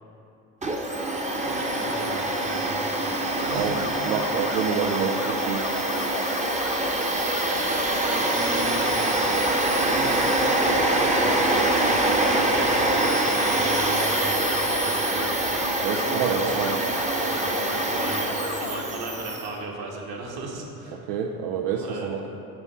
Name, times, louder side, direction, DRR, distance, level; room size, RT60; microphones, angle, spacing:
Domestic sounds home sounds, 0.6-19.5, right 1 dB, 15° right, 0.9 m, -24 dB
voice 1, 1.3-2.9 3.3-3.7 8.0-9.0 9.7-11.3 11.8-15.3 16.1-16.9 17.1-21.1 21.7-22.1, right 2 dB, 50° right, 0 dB, 1.5 m, -37 dB
sound 1, 3.2-18.8, left 6 dB, 30° left, 0.5 m, -36 dB
voice 2, 3.2-5.6 15.8-16.8 20.9-22.2, right 7 dB, 80° right, 1 dB, 0.6 m, -28 dB
7.6 x 4.4 x 6.1 m, 2.8 s
hypercardioid pair, 75°, 47 cm